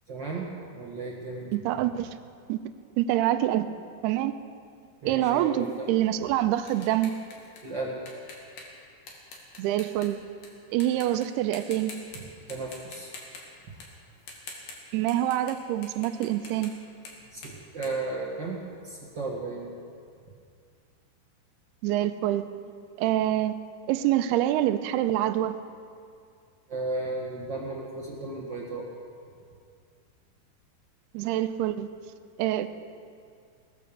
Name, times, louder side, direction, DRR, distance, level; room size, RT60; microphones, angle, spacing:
voice 1, 0.1-0.5 0.7-1.5 5.0-5.9 7.6-8.0 12.5-13.1 17.3-19.7 26.7-28.9, right 2 dB, 60° right, -3 dB, 1.1 m, -34 dB
voice 2, 1.5-2.1 2.5-2.6 3.0-3.7 4.0-4.4 5.1-7.2 9.6-10.2 10.7-11.9 14.9-16.7 21.8-22.4 23.0-23.5 23.9-25.6 31.1-31.9 32.4-32.7, right 13 dB, 85° right, 11 dB, 2.6 m, -26 dB
sound 1, 5.6-10.5 10.8-11.3 11.5-12.2 12.5-18.8, left 3 dB, 60° left, 3.5 m, -46 dB
18.5 x 10.5 x 7.1 m, 2.3 s
omnidirectional pair, 4.7 m